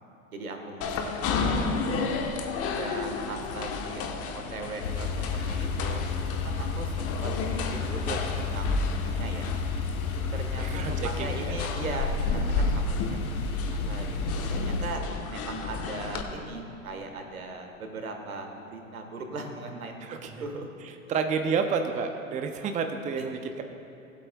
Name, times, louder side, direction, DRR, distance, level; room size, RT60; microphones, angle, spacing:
voice 1, 0.3-2.2 2.7-6.0 6.4-9.5 10.3-12.7 13.0-20.1 20.4-20.7 21.1-21.2, right 3 dB, 85° right, 4 dB, 1.5 m, -39 dB
sound 1, 0.8-16.2, left 4 dB, 35° left, 1.1 m, -32 dB
sound 2, 4.8-14.9, left 4 dB, 85° left, 0.9 m, -31 dB
voice 2, 10.6-11.6 20.0-20.4 21.1-23.6, right 5 dB, 20° right, 6 dB, 0.6 m, -30 dB
19.5 x 8.3 x 2.3 m, 3.0 s
hypercardioid pair, 95°, 42 cm